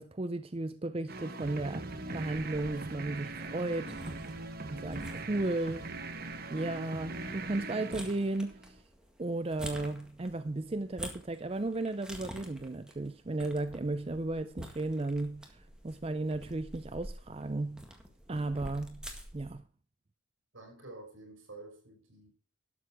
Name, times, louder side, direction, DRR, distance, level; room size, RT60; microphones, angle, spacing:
voice 1, 0.0-4.0 4.7-5.9 6.5-8.8 9.2-17.9 18.3-19.1 19.3-19.6, right 2 dB, 30° right, 0.5 m, -35 dB
sound 1, 1.1-8.8, right 2 dB, 45° right, 1.1 m, -41 dB
sound 2, 2.4-19.5, equal, 5° right, 1.8 m, -49 dB
voice 2, 20.5-22.3, right 2 dB, 75° right, 5.8 m, -49 dB
12.5 x 7.8 x 4.7 m
head